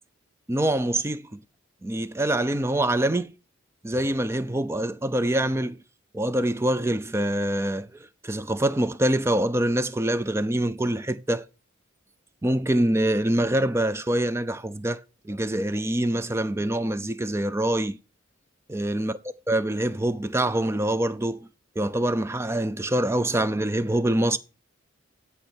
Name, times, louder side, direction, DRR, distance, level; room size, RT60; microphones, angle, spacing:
voice 1, 0.5-1.4 1.8-3.3 3.8-5.8 6.1-7.9 8.2-11.4 12.4-15.0 15.3-18.0 18.7-19.1 19.5-21.5 21.8-24.4, right 1 dB, 10° right, 0.4 m, -25 dB
11.0 x 5.5 x 4.4 m
head